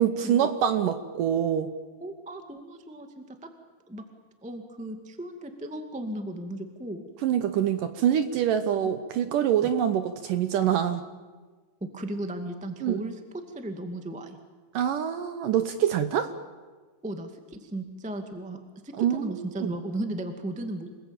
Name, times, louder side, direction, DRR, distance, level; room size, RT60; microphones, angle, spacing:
voice 1, 0.0-1.7 7.2-11.0 12.8-13.0 14.7-16.3 19.0-19.7, right 9 dB, 70° right, 10 dB, 2.1 m, -25 dB
voice 2, 2.0-3.2 3.9-4.0 4.4-7.0 8.7-8.9 9.6-9.7 11.8-13.1 13.5-14.4 17.0-20.9, right 1 dB, 10° right, 6 dB, 0.4 m, -36 dB
28.0 x 20.5 x 8.9 m, 1.4 s
omnidirectional pair, 4.8 m